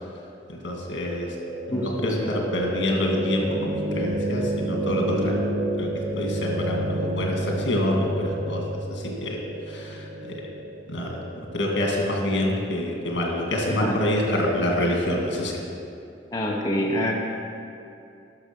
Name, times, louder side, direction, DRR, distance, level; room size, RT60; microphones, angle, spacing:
voice 1, 0.5-1.4 1.7-5.4 5.8-8.6 8.9-9.4 9.6-10.4 10.9-11.2 11.5-15.6, left 1 dB, 80° left, 0 dB, 1.8 m, -26 dB
sound 1, 1.3-13.3, right 1 dB, 40° right, 2.8 m, -31 dB
voice 2, 1.7-2.3 13.7-14.0 16.3-17.1, left 1 dB, 20° left, -2 dB, 0.9 m, -26 dB
11.5 x 6.4 x 5.2 m, 2.6 s
head